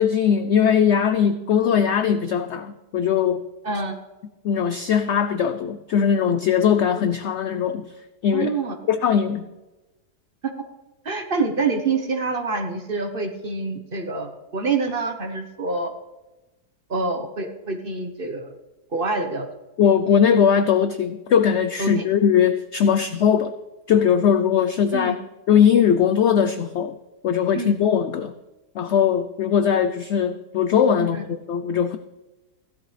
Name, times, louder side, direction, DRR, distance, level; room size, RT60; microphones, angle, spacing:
voice 1, 0.0-3.4 4.4-7.9 8.2-8.5 8.9-9.5 19.8-23.5 23.9-25.1 25.5-26.9 27.2-28.3 28.8-32.0, left 8 dB, 85° left, 10 dB, 0.6 m, -20 dB
voice 2, 3.6-4.0 8.3-8.7 11.0-15.9 16.9-18.5 18.9-19.5 21.8-22.0 24.9-25.2 27.5-27.7 31.0-31.2, right 3 dB, 40° right, 5 dB, 1.0 m, -26 dB
16.0 x 12.0 x 3.3 m, 1.1 s
omnidirectional pair, 1.8 m